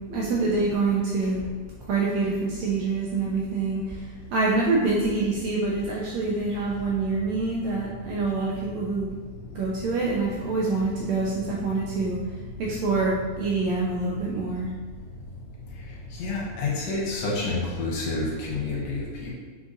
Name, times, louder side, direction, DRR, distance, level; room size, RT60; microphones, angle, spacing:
voice 1, 0.1-1.5 1.8-9.1 9.5-12.2 12.6-14.7, right 3 dB, 80° right, -4 dB, 1.6 m, -26 dB
voice 2, 16.1-19.3, left 3 dB, 75° left, -3 dB, 1.6 m, -29 dB
5.1 x 3.7 x 2.5 m, 1.3 s
omnidirectional pair, 3.6 m